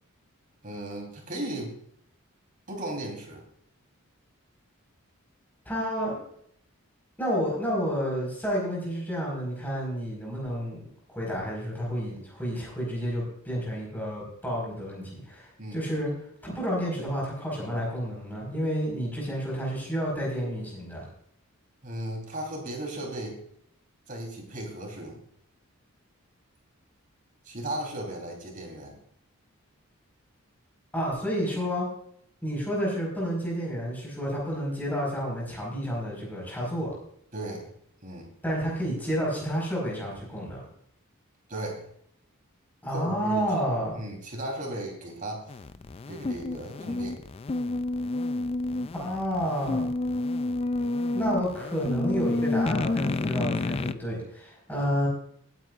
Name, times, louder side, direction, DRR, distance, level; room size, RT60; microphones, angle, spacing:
voice 1, 0.6-1.7 2.7-3.4 15.6-15.8 21.8-23.4 24.1-25.2 27.4-28.9 37.3-37.6 38.0-38.3 41.5-41.8 42.9-43.5 43.9-45.5 46.1-47.2 54.8-55.0, right 1 dB, 40° right, 0 dB, 3.6 m, -36 dB
voice 2, 5.6-6.2 7.2-10.8 11.1-16.1 16.4-21.0 30.9-31.8 32.4-36.9 38.4-40.6 42.8-44.0 49.0-49.9 51.1-55.1, equal, 10° left, -4 dB, 4.8 m, -30 dB
sound 1, 45.5-53.9, left 2 dB, 25° left, 0.3 m, -29 dB
19.5 x 9.4 x 2.5 m, 0.68 s
head